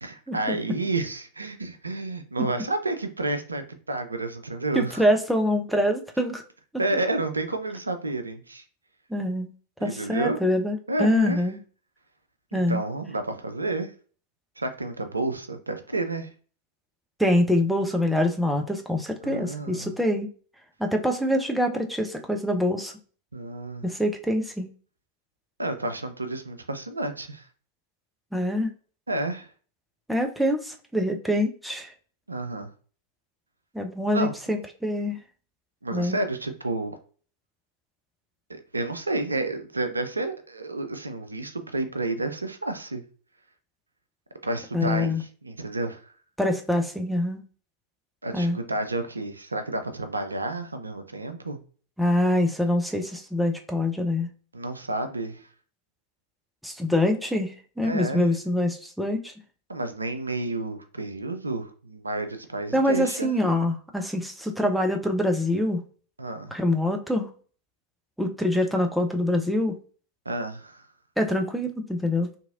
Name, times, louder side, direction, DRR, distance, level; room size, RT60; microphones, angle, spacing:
voice 1, 0.0-5.1 6.8-8.6 9.8-10.4 10.9-11.5 12.5-13.9 14.6-16.3 19.2-19.9 23.3-23.9 25.6-27.5 29.1-29.5 32.3-32.7 34.1-34.3 35.8-37.0 38.5-43.0 44.4-46.0 48.2-51.6 54.5-55.5 57.8-58.3 59.7-63.3 66.2-66.5 70.3-70.8, right 2 dB, 80° right, 0.4 m, -30 dB
voice 2, 4.7-6.4 9.1-9.5 9.8-11.6 12.5-12.8 17.2-20.3 20.8-22.9 23.8-24.7 28.3-28.7 30.1-31.9 33.7-35.2 35.9-36.2 44.7-45.2 46.4-47.4 48.3-48.6 52.0-54.3 56.6-59.3 62.7-65.8 66.5-67.3 68.2-69.8 71.2-72.3, left 1 dB, ahead, 0.4 m, -25 dB
2.8 x 2.7 x 2.4 m
figure-of-eight pair, 90°, 0 cm